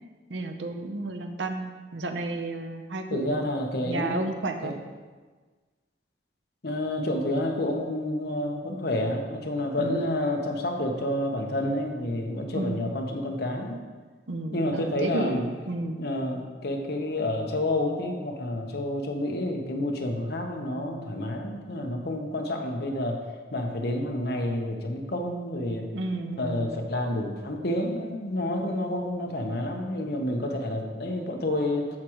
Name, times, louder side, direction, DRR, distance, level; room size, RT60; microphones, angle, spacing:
voice 1, 0.3-3.5 3.9-4.8 9.7-10.1 12.5-12.9 14.3-16.0 25.9-26.8, right 2 dB, 85° right, 6 dB, 0.7 m, -32 dB
voice 2, 3.1-4.3 4.6-4.7 6.6-13.8 14.5-15.5 16.0-23.2 23.5-25.9 26.4-31.9, left 1 dB, 60° left, 2 dB, 1.0 m, -29 dB
13.5 x 4.9 x 3.1 m, 1.4 s
head